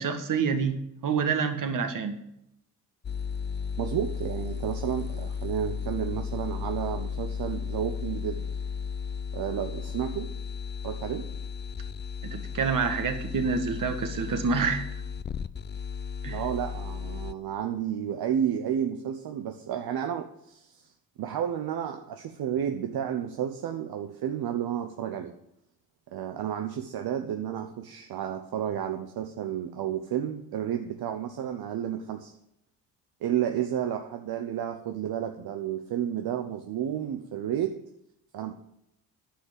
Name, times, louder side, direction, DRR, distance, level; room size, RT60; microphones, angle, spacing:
voice 1, 0.0-2.2 12.2-14.9 16.2-16.4, right 5 dB, 55° right, 7 dB, 1.7 m, -27 dB
sound 1, 3.0-17.3, left 6 dB, 30° left, 0.5 m, -35 dB
voice 2, 3.8-8.5 9.3-10.3 10.8-11.3 16.3-20.9 21.2-25.3 26.1-32.4 33.2-37.8 38.3-38.5, right 9 dB, 75° right, 5 dB, 0.9 m, -31 dB
10.0 x 5.7 x 7.5 m, 0.78 s
cardioid pair, 75°, 38 cm